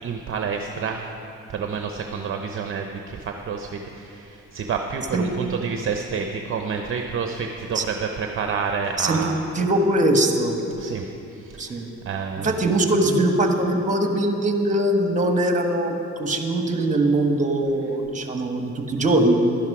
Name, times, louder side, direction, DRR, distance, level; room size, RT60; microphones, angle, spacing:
voice 1, 0.0-1.1 1.5-9.4 10.8-12.6, right 6 dB, 45° right, 4 dB, 0.7 m, -29 dB
voice 2, 9.5-10.6 11.6-11.9 12.4-15.9 16.2-19.3, right 1 dB, 25° right, 4 dB, 1.4 m, -21 dB
12.0 x 10.5 x 4.9 m, 2.7 s
cardioid pair, 90°, 30 cm